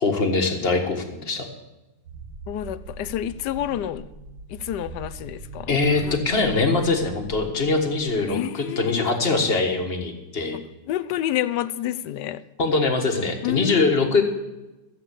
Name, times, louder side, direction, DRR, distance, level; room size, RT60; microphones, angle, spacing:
voice 1, 0.0-1.5 5.7-10.6 12.6-14.2, left 3 dB, 35° left, 5 dB, 1.7 m, -22 dB
sound 1, 2.0-8.3, right 3 dB, 70° right, 2.5 m, -41 dB
voice 2, 2.5-4.0 4.5-6.1 8.3-9.2 10.9-12.4 13.4-14.0, left 12 dB, 75° left, 16 dB, 1.2 m, -29 dB
13.5 x 7.8 x 8.4 m, 1.0 s
omnidirectional pair, 1.9 m